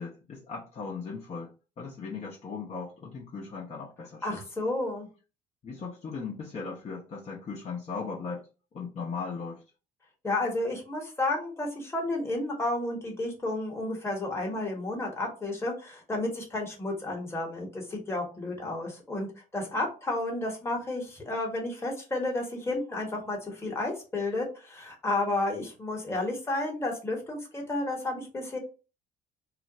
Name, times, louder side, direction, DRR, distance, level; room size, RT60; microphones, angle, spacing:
voice 1, 0.0-4.4 5.6-9.6, left 5 dB, 40° left, 0.8 m, -38 dB
voice 2, 4.2-5.1 10.2-28.6, left 2 dB, 15° left, 1.1 m, -32 dB
2.5 x 2.1 x 3.7 m
cardioid pair, 110°, 17 cm